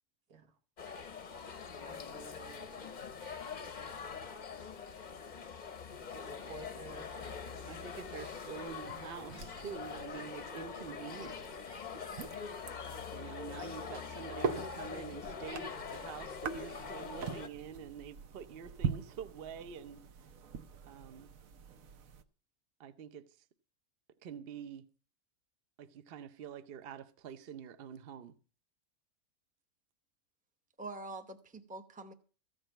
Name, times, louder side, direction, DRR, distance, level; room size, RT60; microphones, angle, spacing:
sound 1, 0.8-17.5, left 6 dB, 40° left, 0.8 m, -44 dB
voice 1, 1.9-2.8 6.1-7.1, right 5 dB, 85° right, 1.9 m, -52 dB
sound 2, 6.5-22.2, right 6 dB, 65° right, 1.2 m, -44 dB
voice 2, 7.6-11.4 13.1-20.1 20.9-21.3 22.8-23.4 24.2-24.9 25.8-28.3, right 7 dB, 50° right, 0.9 m, -47 dB
voice 3, 30.8-32.1, right 2 dB, 5° right, 0.7 m, -45 dB
14.5 x 5.3 x 9.0 m
omnidirectional pair, 1.6 m